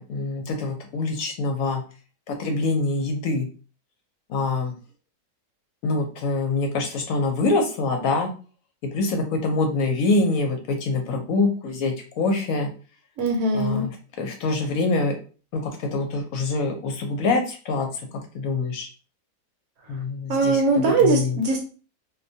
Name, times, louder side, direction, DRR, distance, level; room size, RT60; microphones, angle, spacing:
voice 1, 0.0-1.8 2.3-3.5 4.3-4.7 5.8-8.3 8.8-12.7 13.5-13.9 14.2-15.2 15.5-18.1 18.3-18.9 19.9-21.4, left 3 dB, 70° left, 3 dB, 0.9 m, -25 dB
voice 2, 13.2-13.9 20.3-21.6, right 3 dB, 70° right, 3 dB, 1.0 m, -21 dB
2.5 x 2.2 x 2.6 m, 0.36 s
omnidirectional pair, 1.6 m